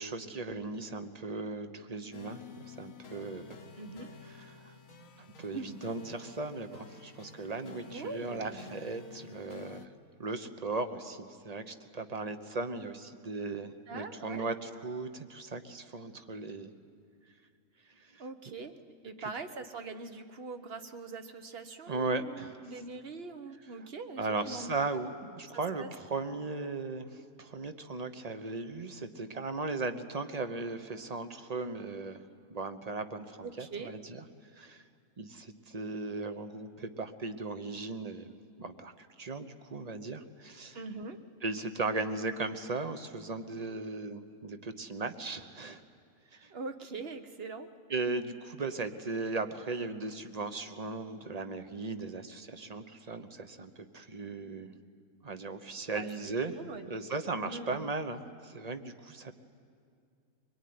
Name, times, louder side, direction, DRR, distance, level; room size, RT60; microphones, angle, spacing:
voice 1, 0.0-3.6 4.5-4.7 5.4-9.9 10.2-16.7 18.0-18.2 19.2-19.3 21.9-22.6 24.2-32.2 32.5-34.2 34.5-34.8 35.2-38.3 38.6-40.8 41.4-45.8 46.3-46.5 47.9-54.7 55.2-56.6 56.9-59.3, right 3 dB, 30° right, 9 dB, 1.0 m, -37 dB
sound 1, 2.1-9.9, left 6 dB, 75° left, 1.6 m, -51 dB
voice 2, 3.8-4.1 5.5-5.8 7.8-8.8 13.9-14.5 18.2-18.7 19.0-24.7 25.5-25.9 33.4-33.9 40.7-41.2 46.5-47.7 55.9-56.9 57.4-57.9, right 4 dB, 45° right, 8 dB, 1.3 m, -42 dB
23.5 x 21.5 x 9.5 m, 2.3 s
omnidirectional pair, 1.5 m